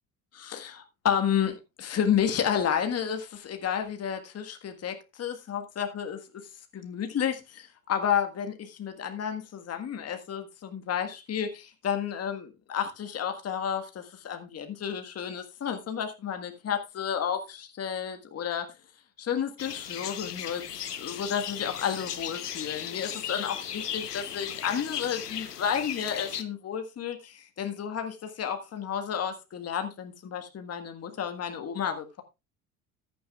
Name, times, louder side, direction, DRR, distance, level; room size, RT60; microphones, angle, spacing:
voice 1, 0.4-6.2 6.7-18.7 19.2-20.6 21.0-32.2, left 8 dB, 30° left, 1.6 m, -31 dB
sound 1, 19.6-26.4, left 9 dB, 85° left, 1.0 m, -36 dB
14.0 x 11.0 x 2.4 m
figure-of-eight pair, 65°, 46 cm